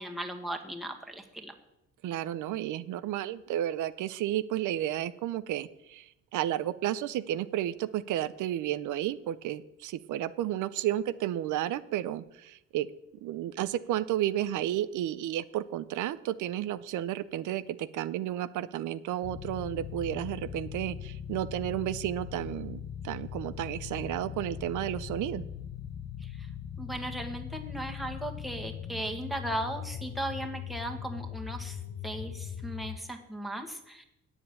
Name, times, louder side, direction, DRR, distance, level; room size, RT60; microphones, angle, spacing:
voice 1, 0.0-1.5 26.2-26.5 26.8-31.8 32.0-34.0, right 1 dB, ahead, 2 dB, 1.6 m, -37 dB
voice 2, 2.0-12.9 13.2-25.5, right 12 dB, 80° right, 13 dB, 0.5 m, -32 dB
sound 1, 19.2-33.0, left 9 dB, 60° left, 0.8 m, -40 dB
8.3 x 7.0 x 8.7 m, 0.87 s
cardioid pair, 90°, 30 cm